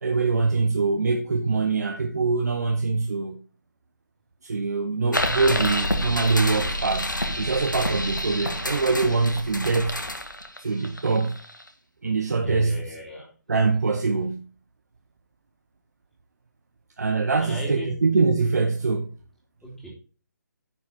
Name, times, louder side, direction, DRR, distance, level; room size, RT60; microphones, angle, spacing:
voice 1, 0.0-3.4 4.4-10.0 10.6-11.3 12.0-12.8 13.5-14.5 17.0-19.1, right 4 dB, 60° right, 1.1 m, -24 dB
sound 1, 5.1-11.7, left 1 dB, 90° left, 1.7 m, -28 dB
voice 2, 12.4-13.3 17.4-17.9 19.6-19.9, equal, 5° left, 3.1 m, -36 dB
10.0 x 6.0 x 4.2 m
figure-of-eight pair, 145°, 10 cm